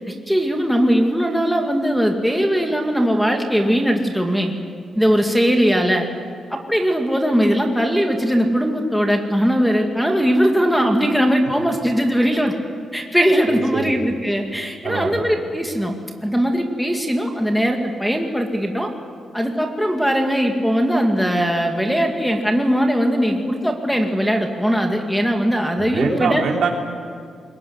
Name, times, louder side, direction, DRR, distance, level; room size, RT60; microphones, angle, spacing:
voice 1, 0.1-4.5 5.0-6.1 6.5-12.5 12.9-15.9 16.2-18.9 19.3-26.4, equal, ahead, 3 dB, 2.2 m, -19 dB
voice 2, 13.5-13.9 14.8-15.2 25.8-26.7, right 5 dB, 75° right, 0 dB, 3.9 m, -24 dB
22.5 x 21.0 x 9.4 m, 2.1 s
wide cardioid pair, 140°, 0 cm